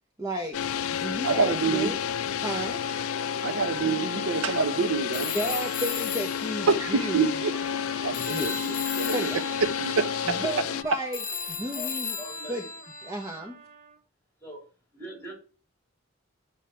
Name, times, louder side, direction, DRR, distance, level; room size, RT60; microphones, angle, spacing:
voice 1, 0.2-0.6 0.9-2.0 2.4-2.8 5.3-7.4 8.1-9.4 10.2-12.1 12.5-12.6 13.0-13.6, right 1 dB, 15° right, 0.9 m, -33 dB
sound 1, 0.5-10.8, left 8 dB, 80° left, 0.4 m, -31 dB
voice 2, 1.2-1.9 3.4-5.3 6.7-7.5 8.0-9.3 9.8-10.4, right 4 dB, 75° right, 0.7 m, -27 dB
sound 2, 2.4-14.0, right 3 dB, 45° right, 2.1 m, -46 dB
Telephone, 5.1-7.9 8.1-13.4, left 7 dB, 40° left, 0.9 m, -36 dB
voice 3, 11.7-12.7 14.4-14.6 14.9-15.3, equal, 10° left, 3.2 m, -42 dB
8.9 x 6.3 x 4.4 m
head